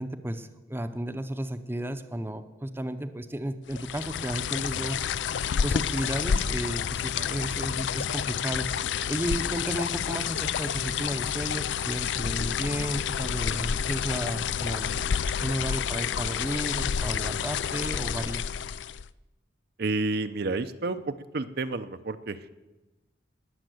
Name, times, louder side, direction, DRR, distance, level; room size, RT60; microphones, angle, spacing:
voice 1, 0.0-5.1 5.6-8.7 9.1-18.4, right 1 dB, 10° right, 8 dB, 0.7 m, -33 dB
sound 1, 3.7-19.1, left 8 dB, 70° left, 0.4 m, -29 dB
voice 2, 19.8-22.5, right 3 dB, 55° right, 9 dB, 0.7 m, -30 dB
19.5 x 7.2 x 7.9 m, 1.1 s
head